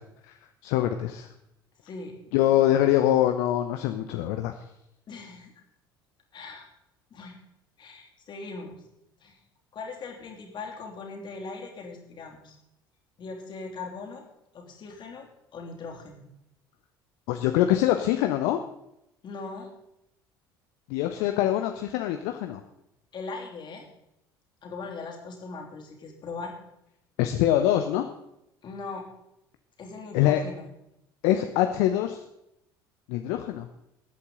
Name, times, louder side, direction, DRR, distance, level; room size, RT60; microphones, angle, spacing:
voice 1, 0.6-1.3 2.3-4.5 17.3-18.6 20.9-22.6 27.2-28.1 30.1-30.4 31.2-32.2 33.1-33.7, left 12 dB, 60° left, 7 dB, 0.8 m, -24 dB
voice 2, 1.8-2.1 5.1-5.5 6.3-6.7 7.1-7.3 7.8-8.8 9.2-9.4 9.7-12.6 13.2-14.2 14.5-16.3 19.2-19.7 23.1-23.9 24.6-26.5 28.6-29.1 29.8-30.7, left 4 dB, 40° left, 1 dB, 3.0 m, -40 dB
20.5 x 8.4 x 3.9 m, 0.83 s
figure-of-eight pair, 60°, 12 cm